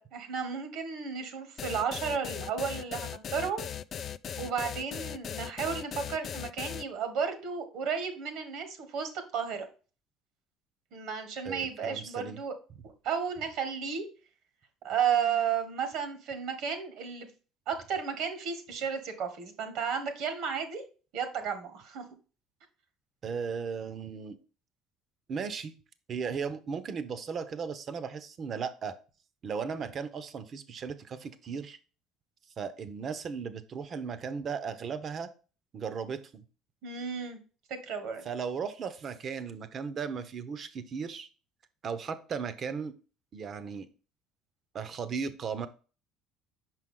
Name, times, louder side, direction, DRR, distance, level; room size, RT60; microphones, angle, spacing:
voice 1, 0.0-3.7 4.4-9.7 10.9-12.5 13.0-14.0 14.8-17.3 17.7-20.8 21.1-22.0 36.8-37.4 37.7-38.2, right 7 dB, 70° right, 8 dB, 1.4 m, -33 dB
sound 1, 1.6-6.8, left 9 dB, 50° left, 0.3 m, -38 dB
voice 2, 11.4-12.4 23.2-24.4 25.3-25.7 26.1-28.9 29.4-31.8 32.6-35.3 35.7-36.4 38.2-41.3 41.8-42.9 43.3-43.9 44.7-45.7, right 6 dB, 45° right, 13 dB, 0.8 m, -36 dB
5.7 x 4.6 x 3.7 m, 0.35 s
supercardioid pair, 80°, 0 cm